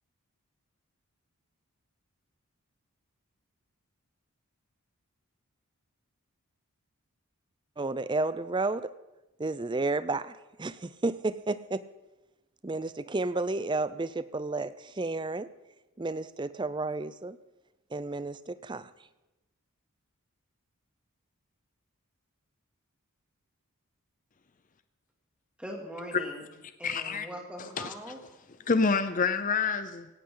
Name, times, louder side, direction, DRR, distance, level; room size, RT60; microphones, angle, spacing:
voice 1, 7.8-8.9 9.4-11.9 12.6-15.5 16.0-17.4 17.9-18.9, right 3 dB, 20° right, 0.5 m, -32 dB
voice 2, 25.6-26.5 26.8-28.2, equal, 5° right, 2.5 m, -41 dB
voice 3, 26.8-27.3 27.8-27.9 28.7-30.1, left 4 dB, 35° left, 0.6 m, -27 dB
17.5 x 17.5 x 3.9 m
head